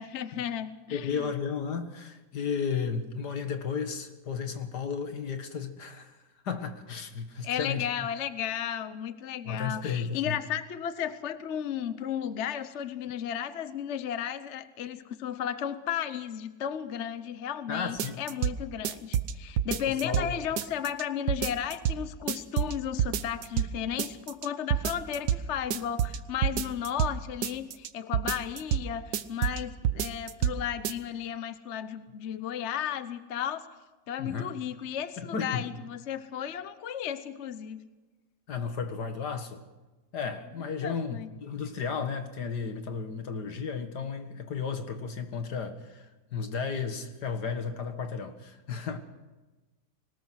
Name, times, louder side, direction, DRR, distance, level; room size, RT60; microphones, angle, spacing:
voice 1, 0.0-1.3 7.4-33.7 34.1-37.8 40.8-41.3, left 9 dB, 50° left, 12 dB, 1.0 m, -34 dB
voice 2, 0.9-6.2 6.4-7.9 9.5-10.4 17.7-18.2 20.0-20.4 34.2-34.5 35.3-35.6 38.5-39.6 40.1-49.0, left 6 dB, 75° left, 7 dB, 2.2 m, -33 dB
sound 1, 18.0-18.6 18.8-20.3 20.6-21.0 21.3-22.0 22.3-22.7 23.0-23.7 24.0-24.5 24.7-25.4 25.7-27.1 27.4-27.9 28.1-28.8 29.1-29.6 29.8-30.6 30.8-30.9, right 10 dB, 85° right, 1.5 m, -28 dB
21.5 x 19.5 x 6.4 m, 1.2 s
omnidirectional pair, 1.8 m